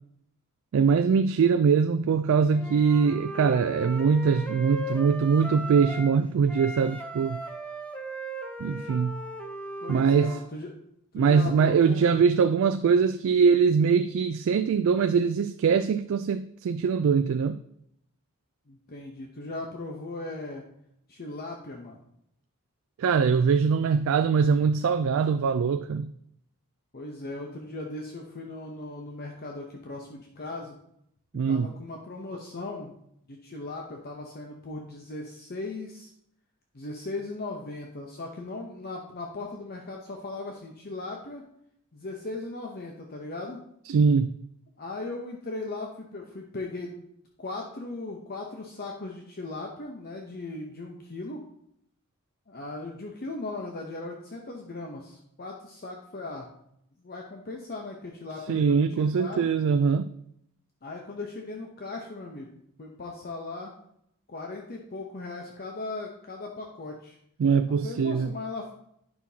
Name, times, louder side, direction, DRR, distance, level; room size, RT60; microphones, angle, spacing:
voice 1, 0.7-7.4 8.6-9.2 9.9-10.3 11.2-17.6 23.0-26.1 31.3-31.7 43.9-44.4 58.5-60.1 67.4-68.3, right 6 dB, 60° right, 0.3 m, -22 dB
Wind instrument woodwind instrument, 2.5-6.2 6.5-10.4, right 1 dB, 5° left, 0.6 m, -38 dB
voice 2, 9.8-10.7 11.1-12.2 18.7-20.7 21.1-22.0 26.9-30.8 31.3-32.9 33.3-36.1 36.7-41.4 41.9-43.6 44.8-47.0 47.4-51.4 52.5-56.5 57.0-59.5 60.8-62.5 62.8-63.7 64.3-67.2 67.7-68.7, left 2 dB, 45° left, 0.8 m, -38 dB
9.5 x 5.9 x 2.8 m
head